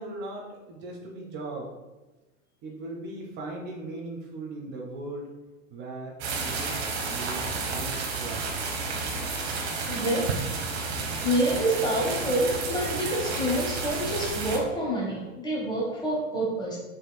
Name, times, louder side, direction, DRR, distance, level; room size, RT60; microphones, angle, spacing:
voice 1, 0.0-1.7 2.6-5.3 5.7-8.5, right 2 dB, 25° right, -1 dB, 0.7 m, -38 dB
sound 1, 6.2-14.6, right 4 dB, 55° right, 0.9 m, -31 dB
voice 2, 9.9-10.3 11.2-16.8, right 1 dB, 10° left, -3 dB, 0.8 m, -27 dB
5.8 x 2.9 x 2.2 m, 1.1 s
figure-of-eight pair, 90°, 40 cm